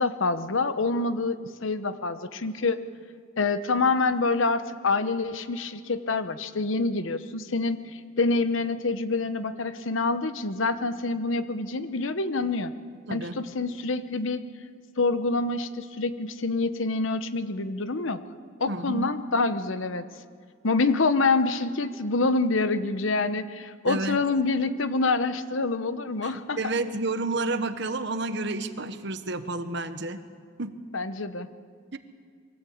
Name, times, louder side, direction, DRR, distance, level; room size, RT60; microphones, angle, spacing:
voice 1, 0.0-2.8 3.4-7.8 8.2-12.7 13.1-14.4 15.0-18.2 18.6-20.0 20.6-26.6 30.9-31.5, left 3 dB, 75° left, 12 dB, 0.9 m, -26 dB
voice 2, 13.1-13.4 18.7-19.1 23.8-24.2 26.2-30.2 30.6-30.8 31.9-32.0, right 2 dB, 60° right, 10 dB, 1.1 m, -30 dB
23.0 x 15.5 x 8.6 m, 2.1 s
head